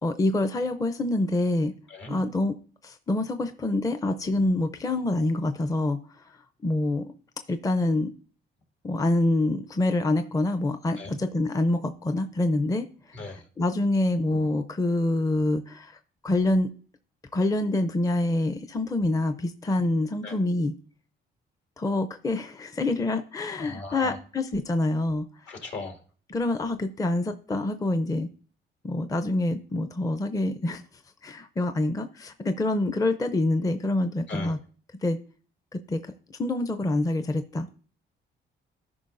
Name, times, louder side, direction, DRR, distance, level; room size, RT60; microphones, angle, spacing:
voice 1, 0.0-1.7 2.1-2.5 2.8-6.0 6.6-7.1 7.5-8.1 8.8-12.9 13.6-16.0 16.2-16.7 17.3-20.7 21.8-25.2 26.3-28.3 28.8-30.8 31.2-34.6 35.0-35.2 35.7-36.0 36.4-37.8, left 2 dB, 15° left, 8 dB, 0.5 m, -26 dB
voice 2, 13.1-13.4 20.2-20.4 23.5-24.2 25.5-26.0 34.3-34.5, left 2 dB, 65° left, 3 dB, 2.1 m, -38 dB
13.0 x 5.2 x 2.5 m, 0.41 s
cardioid pair, 90°, 20 cm